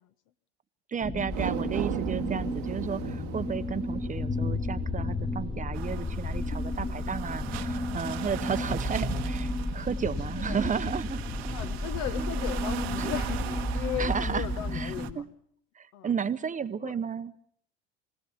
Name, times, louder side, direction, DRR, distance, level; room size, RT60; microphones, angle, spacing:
voice 1, 0.9-11.2 12.2-12.3 13.0-13.1 14.0-14.5 14.7-15.3 15.7-17.3, right 7 dB, 25° right, 13 dB, 0.9 m, -33 dB
sound 1, 1.0-15.1, left 2 dB, 15° left, 1.5 m, -32 dB
sound 2, 1.2-7.7 8.1-8.2, right 16 dB, 65° right, 1.3 m, -39 dB
sound 3, 5.7-15.1, right 14 dB, 85° right, 1.5 m, -41 dB
voice 2, 6.6-7.0 10.3-10.7 11.5-15.2 15.9-16.1 16.8-16.9, left 11 dB, 60° left, 11 dB, 1.4 m, -37 dB
24.5 x 17.0 x 7.3 m, 0.66 s
hypercardioid pair, 85°, 30 cm